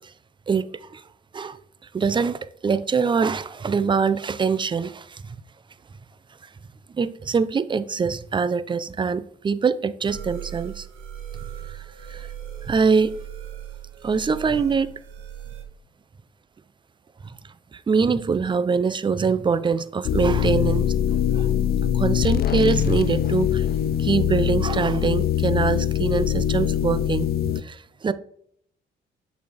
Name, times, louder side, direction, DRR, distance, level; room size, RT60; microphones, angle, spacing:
voice 1, 0.5-1.0 1.3-1.6 1.9-5.4 6.9-10.9 11.7-12.3 12.6-13.1 14.0-14.9 17.2-17.4 17.7-20.9 21.3-21.5 21.9-23.7 24.0-28.1, right 5 dB, 25° right, 0.5 m, -24 dB
sound 1, 10.1-15.6, right 10 dB, 80° right, 1.4 m, -38 dB
sound 2, 20.0-27.6, left 10 dB, 50° left, 0.4 m, -23 dB
6.8 x 4.9 x 4.0 m
cardioid pair, 90°, 20 cm